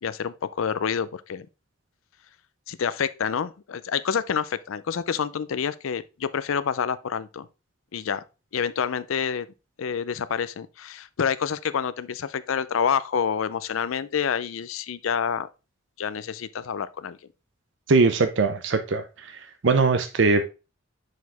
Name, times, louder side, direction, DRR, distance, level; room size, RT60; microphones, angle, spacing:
voice 1, 0.0-1.5 2.7-7.5 7.9-8.2 8.5-9.5 9.8-15.5 16.0-17.2, left 7 dB, 85° left, 0.5 m, -28 dB
voice 2, 17.9-19.0 19.6-20.5, right 4 dB, 65° right, 0.6 m, -20 dB
6.2 x 4.7 x 3.4 m
head